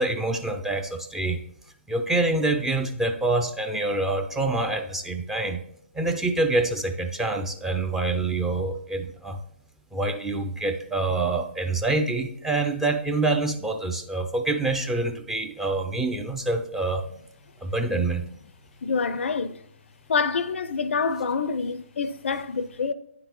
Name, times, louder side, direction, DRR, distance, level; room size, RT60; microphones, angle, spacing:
voice 1, 0.0-1.4 1.9-5.6 5.9-9.4 9.9-17.0 17.6-18.2, right 2 dB, 5° right, 0.4 m, -26 dB
voice 2, 18.8-19.6 20.1-22.9, left 5 dB, 60° left, 0.4 m, -26 dB
9.7 x 3.7 x 2.9 m
figure-of-eight pair, 135°, 7 cm